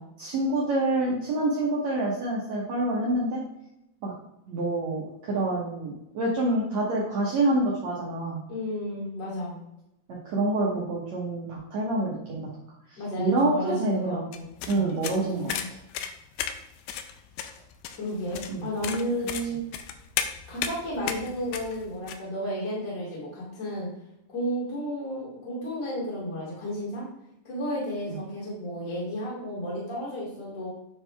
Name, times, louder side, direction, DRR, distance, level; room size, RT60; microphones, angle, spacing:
voice 1, 0.2-3.4 4.0-4.1 4.5-8.4 10.2-12.5 12.9-14.3 14.7-15.5 18.5-18.7 28.1-28.2, right 2 dB, 80° right, -4 dB, 1.5 m, -27 dB
voice 2, 8.5-9.6 13.0-14.5 14.7-15.7 18.0-19.6 20.5-23.9 24.3-27.1 27.4-30.7, equal, 25° left, -6 dB, 2.2 m, -32 dB
sound 1, 14.3-22.2, left 9 dB, 80° left, 2.5 m, -34 dB
9.5 x 4.6 x 3.4 m, 0.85 s
omnidirectional pair, 4.9 m